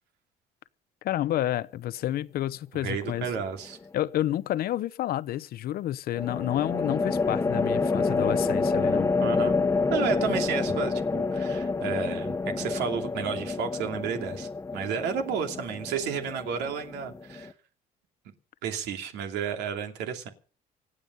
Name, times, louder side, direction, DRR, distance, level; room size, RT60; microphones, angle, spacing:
voice 1, 1.0-3.2 3.9-9.1, left 13 dB, 65° left, 0.8 m, -29 dB
voice 2, 2.7-3.8 9.2-17.5 18.6-20.3, right 7 dB, 85° right, 2.8 m, -32 dB
sound 1, 3.0-3.6 6.1-17.5, left 3 dB, 15° left, 1.2 m, -28 dB
25.5 x 9.0 x 5.4 m
cardioid pair, 110°, 17 cm